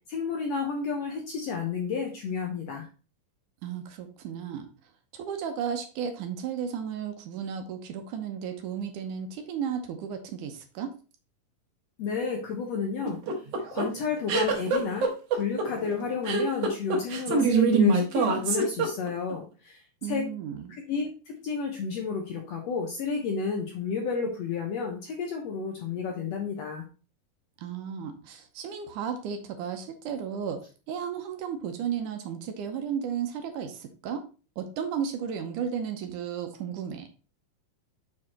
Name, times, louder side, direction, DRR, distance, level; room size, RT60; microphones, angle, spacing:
voice 1, 0.1-2.8 12.0-13.2 13.7-20.3 20.7-26.8, left 5 dB, 70° left, 1 dB, 1.6 m, -31 dB
voice 2, 3.6-4.7 5.1-10.9 20.0-20.8 27.6-30.6 30.9-34.2 34.6-37.1, right 7 dB, 75° right, 6 dB, 2.2 m, -34 dB
sound 1, 13.1-19.3, right 4 dB, 60° right, 1.9 m, -24 dB
6.2 x 4.7 x 4.2 m, 0.35 s
omnidirectional pair, 3.9 m